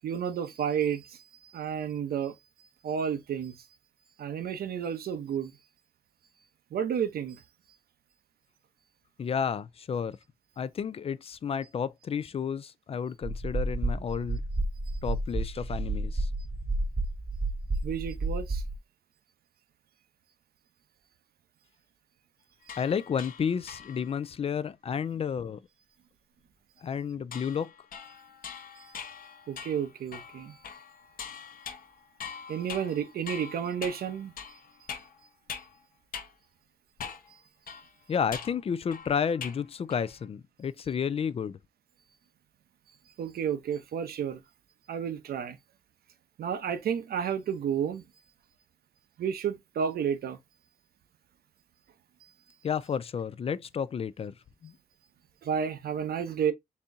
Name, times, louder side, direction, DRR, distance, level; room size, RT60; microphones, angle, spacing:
voice 1, 0.0-2.4 2.8-3.7 4.2-5.5 6.7-7.4 17.8-18.6 28.8-28.9 29.5-30.6 32.5-34.3 43.2-44.4 44.9-45.6 46.4-48.0 49.2-50.4 52.2-52.3 55.4-56.5, right 8 dB, 85° right, 0.8 m, -31 dB
voice 2, 9.2-10.2 10.6-14.4 15.0-16.3 22.8-25.6 26.8-27.7 38.1-41.6 52.6-54.3 54.6-54.7, left 7 dB, 40° left, 0.3 m, -31 dB
sound 1, 13.2-18.8, right 2 dB, 20° right, 0.8 m, -31 dB
sound 2, 22.6-24.2 27.3-35.8 36.1-36.3 37.0-37.3 37.7-39.6 39.9-40.3, left 7 dB, 65° left, 0.9 m, -43 dB
4.1 x 3.6 x 2.6 m
wide cardioid pair, 130°, 15 cm